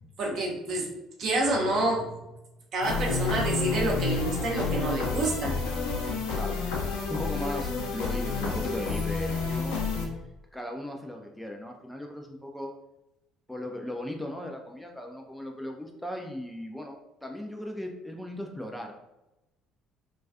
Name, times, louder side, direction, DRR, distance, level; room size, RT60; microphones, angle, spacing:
voice 1, 0.2-0.9 1.2-2.2 2.7-5.6, right 2 dB, 50° right, -1 dB, 0.6 m, -28 dB
sound 1, 2.8-10.1, left 4 dB, 70° left, 0.5 m, -30 dB
voice 2, 7.1-10.0 10.5-12.7 13.5-17.0 17.2-18.9, left 1 dB, 5° left, 2 dB, 0.3 m, -37 dB
2.3 x 2.3 x 2.4 m, 0.96 s
figure-of-eight pair, 55°, 0 cm